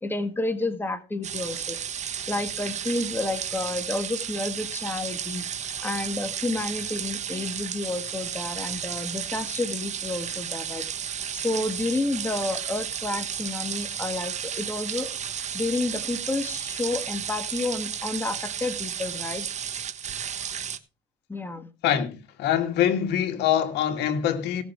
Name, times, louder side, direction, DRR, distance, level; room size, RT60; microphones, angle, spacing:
voice 1, 0.0-1.8 2.3-5.5 5.8-10.9 11.3-15.1 15.5-19.5 21.3-21.7, left 2 dB, 10° left, 1.9 m, -30 dB
sound 1, 1.2-20.8, right 8 dB, 45° right, 1.3 m, -33 dB
voice 2, 21.8-24.6, left 10 dB, 85° left, 2.3 m, -24 dB
17.0 x 7.2 x 4.6 m
cardioid pair, 110°, 17 cm